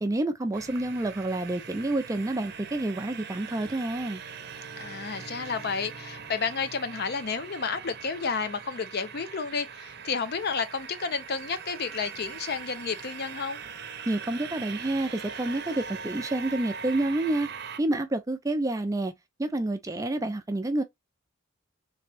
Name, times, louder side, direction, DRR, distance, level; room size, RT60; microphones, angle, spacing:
voice 1, 0.0-4.2 14.1-17.5 17.8-19.1 19.4-20.8, right 2 dB, 15° right, 0.3 m, -28 dB
sound 1, 0.5-17.8, right 6 dB, 50° right, 0.6 m, -41 dB
voice 2, 4.8-13.6, left 5 dB, 45° left, 0.5 m, -31 dB
3.3 x 3.1 x 3.3 m
head